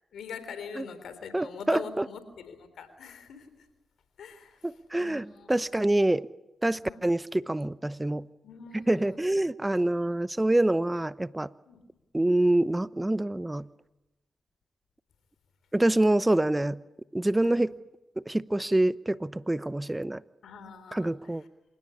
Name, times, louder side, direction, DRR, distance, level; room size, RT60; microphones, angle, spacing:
voice 1, 0.1-3.5 4.2-5.6 6.8-7.0 8.4-9.2 11.7-11.8 17.4-17.6 20.4-21.3, left 5 dB, 80° left, 11 dB, 3.8 m, -44 dB
voice 2, 1.3-2.1 4.6-6.3 6.6-8.3 8.7-11.5 12.1-13.7 15.7-16.8 17.1-17.7 18.2-20.2 20.9-21.4, right 1 dB, 20° right, 16 dB, 0.9 m, -26 dB
27.5 x 17.5 x 9.9 m, 1.0 s
supercardioid pair, 40°, 0 cm